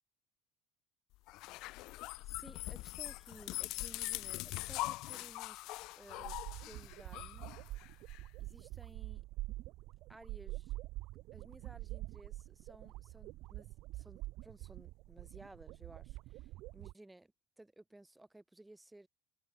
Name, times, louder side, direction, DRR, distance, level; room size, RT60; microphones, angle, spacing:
sound 1, 1.3-8.2, left 20 dB, 65° left, 0.8 m, -42 dB
voice 1, 1.6-2.0 2.2-7.5 8.0-9.2 10.1-10.8 11.3-13.7 13.9-19.1, right 2 dB, 5° right, 1.2 m, -58 dB
sound 2, 6.1-16.9, right 18 dB, 60° right, 0.3 m, -46 dB
cardioid pair, 160°, 0 cm